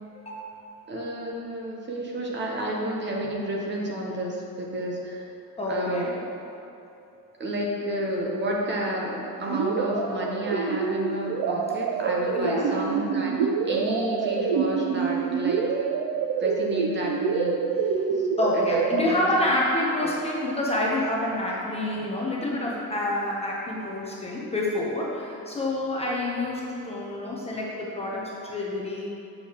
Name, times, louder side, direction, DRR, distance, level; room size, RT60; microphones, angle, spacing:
voice 1, 0.1-0.5 5.6-6.1 12.3-12.7 18.1-29.1, left 1 dB, 15° left, -4 dB, 0.7 m, -28 dB
voice 2, 0.9-5.3 5.7-6.1 7.4-13.3 13.6-15.7 16.4-17.6 18.2-18.3 18.5-19.3 20.0-20.1, equal, 30° right, -2 dB, 0.8 m, -30 dB
sound 1, 9.5-19.0, right 6 dB, 85° right, 0.5 m, -26 dB
7.7 x 6.5 x 2.9 m, 2.8 s
cardioid pair, 165°, 36 cm